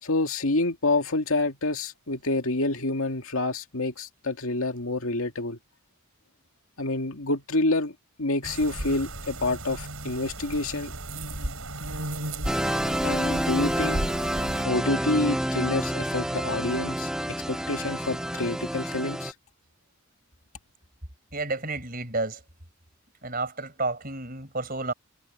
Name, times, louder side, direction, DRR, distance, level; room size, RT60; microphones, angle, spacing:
voice 1, 0.0-5.6 6.8-10.9 13.0-14.0 14.6-19.3, left 2 dB, 80° left, 2.2 m, -28 dB
sound 1, 8.4-14.6, right 1 dB, 80° right, 7.0 m, -35 dB
sound 2, 12.5-19.3, equal, 5° right, 0.5 m, -28 dB
voice 2, 21.3-22.4 23.2-24.9, right 3 dB, 40° right, 5.5 m, -31 dB
head